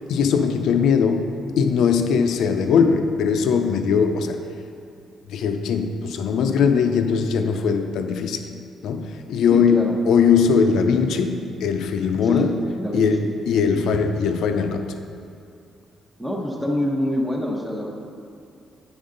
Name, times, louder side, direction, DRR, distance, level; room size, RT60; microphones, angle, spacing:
voice 1, 0.1-4.4 5.3-8.4 8.8-12.5 12.9-14.9, left 6 dB, 80° left, 6 dB, 0.5 m, -20 dB
voice 2, 9.5-9.9 12.2-12.5 12.8-13.3 16.2-17.9, left 1 dB, 5° right, -1 dB, 0.9 m, -25 dB
8.5 x 5.4 x 3.8 m, 2.4 s
cardioid pair, 90°, 0 cm